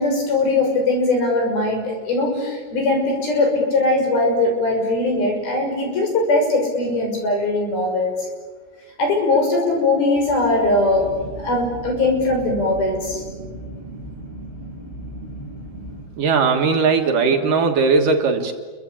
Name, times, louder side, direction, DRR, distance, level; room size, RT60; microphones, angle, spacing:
voice 1, 0.0-8.1 9.0-11.1 11.4-13.2, left 2 dB, 60° left, 2 dB, 8.0 m, -20 dB
sound 1, 10.9-16.0, right 1 dB, 10° left, 7.8 m, -36 dB
voice 2, 16.2-18.5, right 4 dB, 60° right, 4 dB, 2.9 m, -18 dB
29.0 x 24.0 x 8.6 m, 1.5 s
omnidirectional pair, 4.8 m